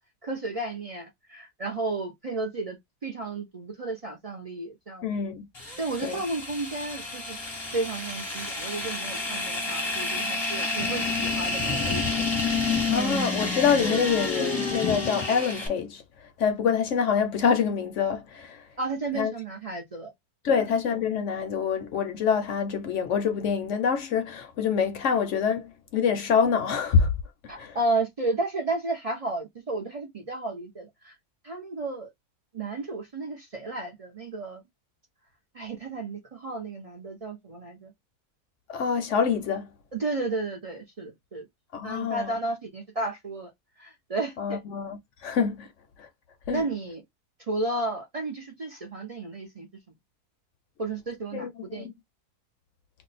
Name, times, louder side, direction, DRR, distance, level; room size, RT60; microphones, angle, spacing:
voice 1, 0.2-5.1 5.8-7.4 7.7-12.0 18.8-20.1 20.5-20.6 27.5-31.1 31.4-32.1 32.5-34.6 35.5-37.9 39.9-41.4 41.8-43.5 43.8-44.6 46.5-47.0 47.5-49.7 50.8-51.9, right 2 dB, 60° right, 0.3 m, -32 dB
voice 2, 5.0-5.5 6.0-6.2 12.9-16.0 16.4-18.6 19.1-19.3 20.4-27.1 27.6-27.8 38.7-39.7 41.7-42.4 44.4-45.7 46.0-46.1 46.5-46.6 51.3-51.9, left 6 dB, 65° left, 0.8 m, -26 dB
sound 1, 5.6-15.7, left 3 dB, 25° left, 0.6 m, -29 dB
2.6 x 2.2 x 4.0 m
omnidirectional pair, 1.7 m